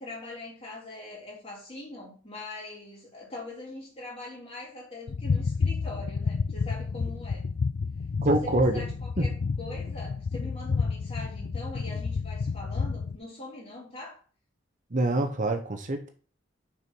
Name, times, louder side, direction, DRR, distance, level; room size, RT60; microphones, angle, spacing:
voice 1, 0.0-7.5 8.3-14.2, left 2 dB, 30° left, -5 dB, 3.5 m, -42 dB
sound 1, 5.1-13.2, left 5 dB, 55° left, 0.4 m, -30 dB
voice 2, 8.2-8.8 9.2-9.3 14.9-16.1, right 1 dB, 40° right, 6 dB, 0.8 m, -25 dB
6.2 x 4.6 x 6.1 m, 0.41 s
head